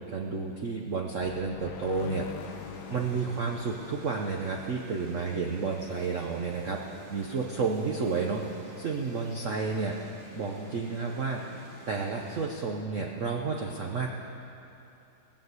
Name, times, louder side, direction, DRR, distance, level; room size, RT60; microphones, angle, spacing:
voice 1, 0.1-2.3 2.9-6.8 7.1-8.4 8.8-10.0 10.3-11.4 11.9-14.2, right 4 dB, 65° right, 1 dB, 0.7 m, -31 dB
sound 1, 1.2-5.8, left 9 dB, 80° left, 0.9 m, -44 dB
sound 2, 2.4-12.5, right 2 dB, 35° right, 1.7 m, -50 dB
18.0 x 6.5 x 8.0 m, 2.8 s
omnidirectional pair, 2.3 m